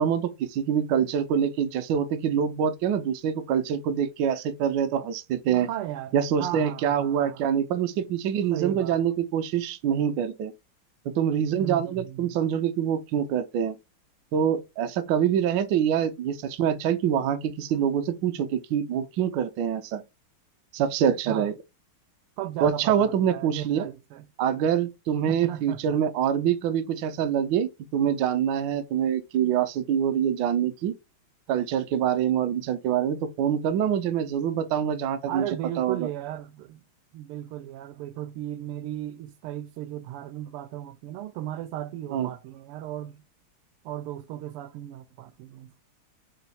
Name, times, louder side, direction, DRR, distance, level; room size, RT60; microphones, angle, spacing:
voice 1, 0.0-5.7 6.1-10.5 11.0-13.8 14.3-20.0 20.7-21.5 22.6-23.9 24.4-30.9 31.5-35.5 35.8-36.1 42.1-42.3, right 8 dB, 70° right, 1.1 m, -25 dB
voice 2, 5.5-7.5 8.5-9.0 11.6-12.4 21.3-21.5 22.4-24.3 25.3-26.0 35.3-36.8 37.1-43.2 43.8-45.8, right 12 dB, 90° right, 1.5 m, -36 dB
3.7 x 2.5 x 4.0 m
omnidirectional pair, 2.4 m